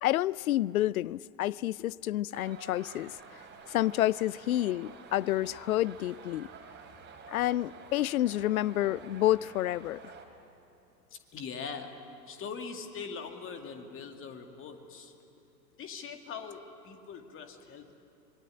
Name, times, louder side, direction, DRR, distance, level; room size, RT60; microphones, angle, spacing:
voice 1, 0.0-3.2 3.7-6.5 7.3-10.1, left 14 dB, 60° left, 0.6 m, -29 dB
sound 1, 2.3-10.2, right 5 dB, 20° right, 3.8 m, -50 dB
voice 2, 11.1-11.9 12.3-15.1 15.8-18.0, left 5 dB, 25° left, 2.3 m, -42 dB
25.5 x 22.0 x 9.9 m
figure-of-eight pair, 100°, 50 cm